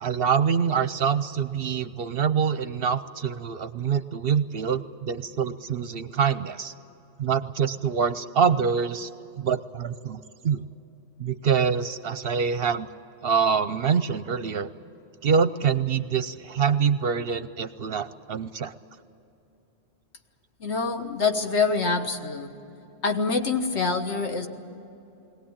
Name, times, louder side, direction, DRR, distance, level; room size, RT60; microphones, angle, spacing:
voice 1, 0.0-6.7 7.2-9.1 9.4-10.6 11.2-12.9 13.2-14.7 15.2-18.7, right 6 dB, 60° right, 13 dB, 0.8 m, -25 dB
voice 2, 20.6-22.5 23.0-24.5, left 4 dB, 65° left, 5 dB, 1.6 m, -25 dB
21.5 x 18.0 x 8.8 m, 3.0 s
omnidirectional pair, 1.3 m